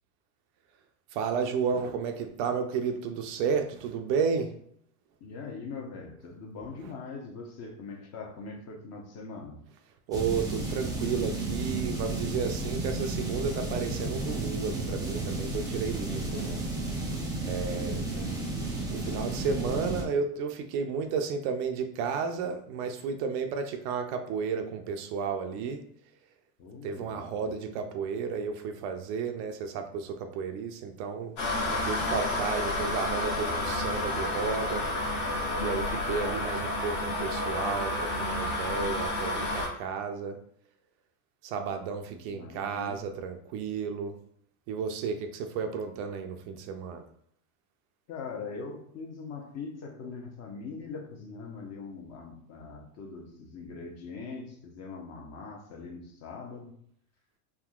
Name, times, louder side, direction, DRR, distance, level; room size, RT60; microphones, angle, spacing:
voice 1, 1.1-4.5 10.1-16.6 17.4-18.0 18.9-25.8 26.8-31.3 31.6-34.9 35.6-40.4 41.4-44.2 44.7-47.0, right 6 dB, 50° right, 6 dB, 0.5 m, -32 dB
voice 2, 5.2-9.6 16.2-16.5 17.6-18.4 26.6-27.5 31.8-32.2 42.1-43.1 48.1-56.7, left 4 dB, 35° left, 2 dB, 0.8 m, -42 dB
sound 1, 10.1-20.0, right 2 dB, 10° right, 0.7 m, -32 dB
sound 2, 31.4-39.7, left 2 dB, 75° left, 1.2 m, -30 dB
3.6 x 2.7 x 2.3 m, 0.67 s
supercardioid pair, 110°, 45 cm